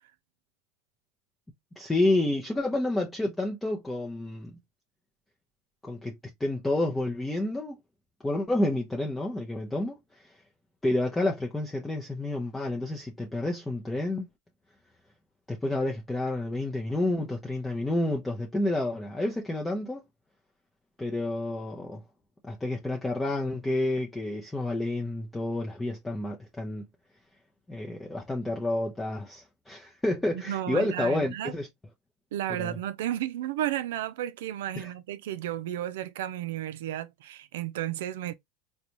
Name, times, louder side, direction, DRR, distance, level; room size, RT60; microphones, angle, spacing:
voice 1, 1.8-4.5 5.8-7.8 8.2-10.0 10.8-14.3 15.5-20.0 21.0-22.0 22.5-26.8 27.7-31.7 32.6-32.8 34.8-34.9, left 2 dB, 10° left, 0.6 m, -29 dB
voice 2, 30.5-31.5 32.3-38.3, right 12 dB, 85° right, 0.4 m, -33 dB
3.9 x 2.2 x 2.9 m
supercardioid pair, 145°, 0 cm